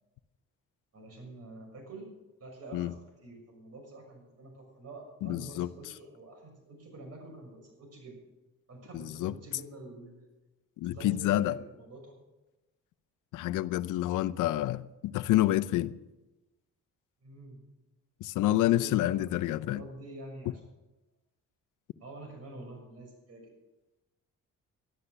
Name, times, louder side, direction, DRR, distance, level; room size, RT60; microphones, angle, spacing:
voice 1, 0.9-2.1 2.4-8.2 8.7-10.3 10.9-12.1 17.2-17.6 18.4-20.6 22.0-23.5, right 2 dB, 55° right, 6.4 m, -47 dB
voice 2, 5.2-5.7 8.9-9.3 10.8-11.6 13.3-15.9 18.2-19.8, left 14 dB, 85° left, 0.7 m, -28 dB
13.0 x 12.0 x 6.6 m
cardioid pair, 90°, 30 cm